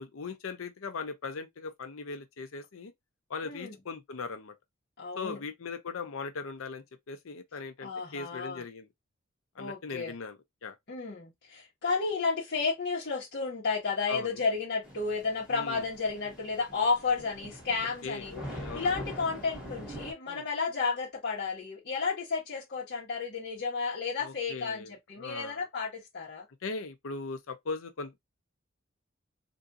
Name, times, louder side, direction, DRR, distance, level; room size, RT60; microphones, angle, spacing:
voice 1, 0.0-2.9 3.3-4.6 5.2-8.9 9.6-10.8 14.1-14.4 15.5-15.9 18.0-18.9 20.3-20.4 24.2-25.6 26.6-28.2, left 4 dB, 90° left, 0.6 m, -39 dB
voice 2, 3.4-3.8 5.0-5.4 7.8-8.6 9.6-10.1 10.9-18.3 18.7-26.5, left 4 dB, 50° left, 1.2 m, -32 dB
Thunder / Rain, 14.8-20.1, equal, 5° right, 1.7 m, -43 dB
3.5 x 2.6 x 2.6 m
head